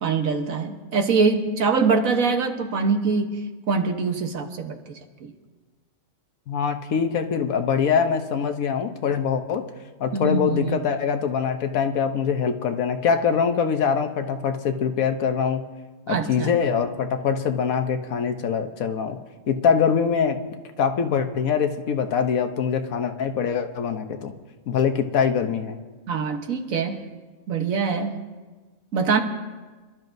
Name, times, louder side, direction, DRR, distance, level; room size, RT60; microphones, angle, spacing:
voice 1, 0.0-3.3 3.7-4.8 5.2-5.3 10.1-10.8 16.1-16.5 26.1-27.0 27.5-28.2 28.9-29.2, right 4 dB, 75° right, 4 dB, 1.6 m, -23 dB
voice 2, 6.5-9.6 10.0-15.6 16.1-19.2 19.5-20.4 20.8-24.3 24.7-25.8, left 6 dB, 80° left, 7 dB, 1.3 m, -23 dB
26.5 x 12.0 x 2.7 m, 1.3 s
omnidirectional pair, 1.4 m